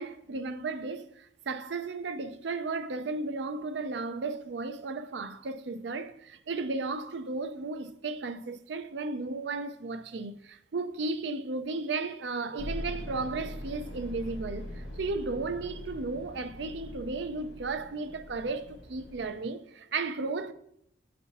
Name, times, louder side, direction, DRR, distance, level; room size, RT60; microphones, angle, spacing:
voice 1, 0.0-20.5, right 3 dB, 70° right, 0.5 m, -34 dB
sound 1, 12.6-19.4, equal, 85° left, 1.6 m, -42 dB
10.0 x 4.2 x 2.9 m
head